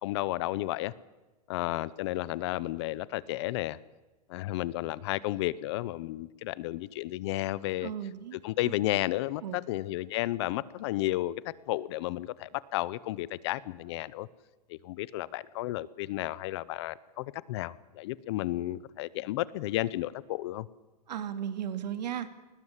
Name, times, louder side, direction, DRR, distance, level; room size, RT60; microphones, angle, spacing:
voice 1, 0.0-0.9 1.5-3.8 4.3-7.9 8.4-11.4 11.7-14.3 14.7-20.7, left 16 dB, 40° left, 20 dB, 0.8 m, -32 dB
voice 2, 7.8-8.4 9.4-9.6 21.1-22.3, right 9 dB, 80° right, 10 dB, 2.4 m, -35 dB
21.0 x 20.0 x 8.3 m, 1.1 s
supercardioid pair, 165°, 21 cm